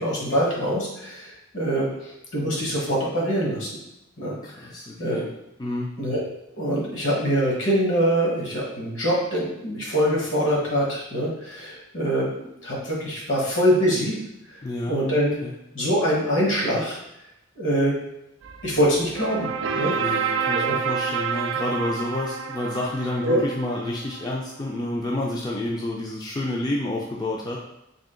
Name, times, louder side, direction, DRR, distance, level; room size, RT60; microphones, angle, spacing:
voice 1, 0.0-3.7 4.2-4.7 5.0-5.3 6.0-6.2 6.6-14.2 14.5-14.6 14.9-15.3 15.7-17.0 17.6-17.9 18.6-19.5 19.7-19.9 20.5-20.8 23.2-23.4, equal, 70° left, -4 dB, 1.4 m, -24 dB
voice 2, 4.4-5.3 5.6-6.0 14.6-15.0 15.4-15.5 19.9-27.6, left 1 dB, 20° left, -3 dB, 0.3 m, -29 dB
sound 1, 18.4-24.3, right 6 dB, 70° right, 0.3 m, -29 dB
3.6 x 2.4 x 3.7 m, 0.87 s
head